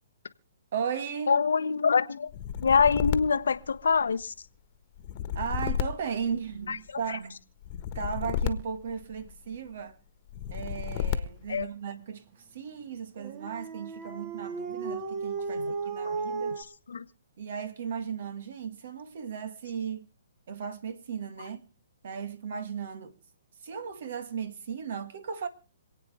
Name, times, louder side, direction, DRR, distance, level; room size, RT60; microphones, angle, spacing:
voice 1, 0.7-1.4 5.4-7.4 8.0-10.0 10.5-12.2 12.5-16.6 17.4-20.1 20.5-21.7 22.0-23.1 23.6-25.5, right 7 dB, 60° right, 1.8 m, -36 dB
voice 2, 1.3-2.3 2.6-4.3 6.7-6.8 7.1-7.2 11.5-11.6 15.6-15.7 16.0-16.2 16.9-17.0, left 5 dB, 80° left, 0.9 m, -25 dB
sound 1, 2.3-4.3 5.0-6.9 7.6-9.5 10.3-11.6, left 9 dB, 40° left, 1.4 m, -33 dB
Dog, 13.2-16.6, right 4 dB, 30° right, 1.7 m, -34 dB
27.0 x 9.0 x 3.4 m
hypercardioid pair, 145°, 0 cm